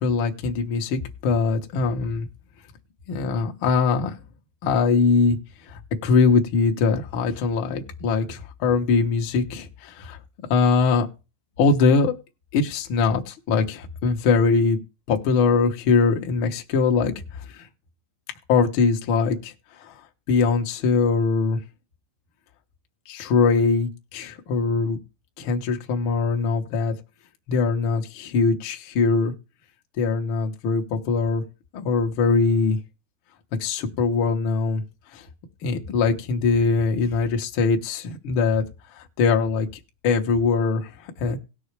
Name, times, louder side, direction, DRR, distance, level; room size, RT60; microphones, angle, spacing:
voice 1, 0.0-2.3 3.1-4.2 4.6-5.4 5.7-11.1 11.6-12.1 12.5-14.8 15.1-17.1 17.5-17.7 18.5-20.0 20.3-21.6 23.1-25.0 25.4-27.0 27.5-29.3 30.0-31.4 31.7-32.8 33.6-34.8 35.1-35.2 35.6-38.6 38.9-39.7 40.0-41.4, left 4 dB, 80° left, 3 dB, 1.1 m, -22 dB
18.0 x 6.3 x 3.3 m, 0.29 s
omnidirectional pair, 4.1 m